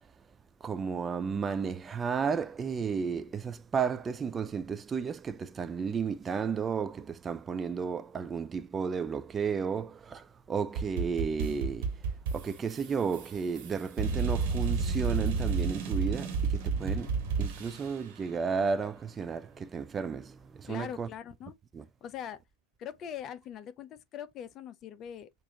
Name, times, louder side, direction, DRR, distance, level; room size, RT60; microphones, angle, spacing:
voice 1, 0.6-12.0 12.3-21.1 21.7-21.8, right 6 dB, 20° right, 0.4 m, -33 dB
sound 1, 10.8-18.1, right 5 dB, 50° right, 1.4 m, -31 dB
voice 2, 20.7-21.5 22.0-22.4 22.8-25.3, left 9 dB, 30° left, 0.6 m, -42 dB
6.1 x 2.6 x 2.7 m
figure-of-eight pair, 90°, 0 cm